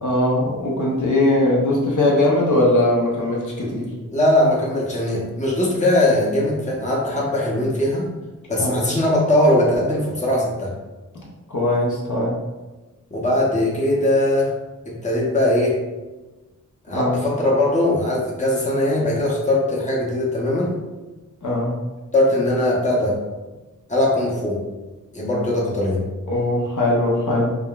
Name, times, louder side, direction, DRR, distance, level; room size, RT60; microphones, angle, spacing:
voice 1, 0.0-3.9 8.6-8.8 11.1-11.2 11.5-12.4 16.9-17.2 21.4-21.8 26.3-27.5, left 1 dB, 65° left, -4 dB, 0.7 m, -20 dB
voice 2, 4.1-8.1 8.5-10.8 13.1-14.5 14.9-15.8 16.9-20.8 22.1-23.2 23.9-24.6 25.1-26.1, left 1 dB, 20° left, -4 dB, 0.7 m, -20 dB
3.6 x 2.2 x 2.3 m, 1.1 s
wide cardioid pair, 70°, 33 cm